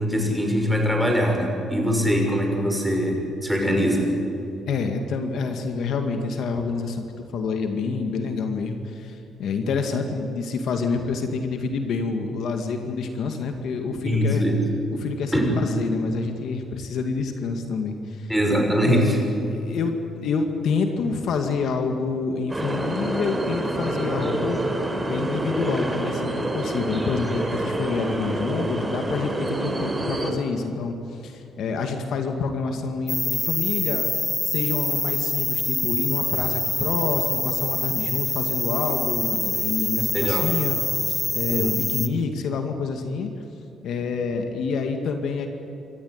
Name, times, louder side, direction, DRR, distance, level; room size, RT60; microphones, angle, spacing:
voice 1, 0.0-4.1 14.0-14.6 15.3-15.6 18.3-19.2 40.1-40.5 41.5-41.8, equal, ahead, 1 dB, 6.1 m, -22 dB
voice 2, 4.7-14.4 15.0-15.3 15.6-18.3 18.8-19.0 19.5-24.6 25.1-34.1 34.4-40.8 41.1-43.3 43.8-45.5, left 4 dB, 75° left, 5 dB, 2.1 m, -27 dB
sound 1, 22.5-30.3, right 1 dB, 15° right, 3.9 m, -27 dB
sound 2, 33.1-42.1, left 2 dB, 15° left, 1.1 m, -25 dB
27.5 x 14.0 x 9.6 m, 2.9 s
cardioid pair, 90°, 0 cm